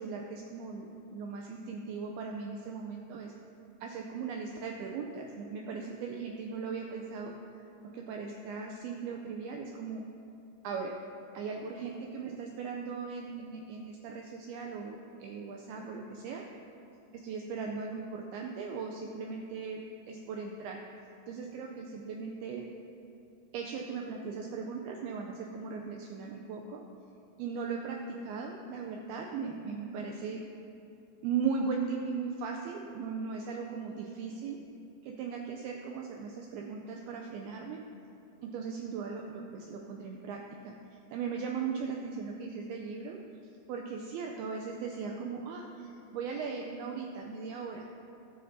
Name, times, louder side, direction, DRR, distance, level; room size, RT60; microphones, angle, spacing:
voice 1, 0.0-3.3 3.8-7.3 7.8-10.0 10.6-10.9 11.3-16.4 17.1-20.8 21.3-22.6 23.5-26.8 27.4-30.4 31.2-34.6 35.0-37.8 38.4-43.2 43.7-47.8, right 5 dB, 90° right, 1 dB, 2.2 m, -38 dB
19.5 x 6.7 x 2.7 m, 2.8 s
omnidirectional pair, 5.1 m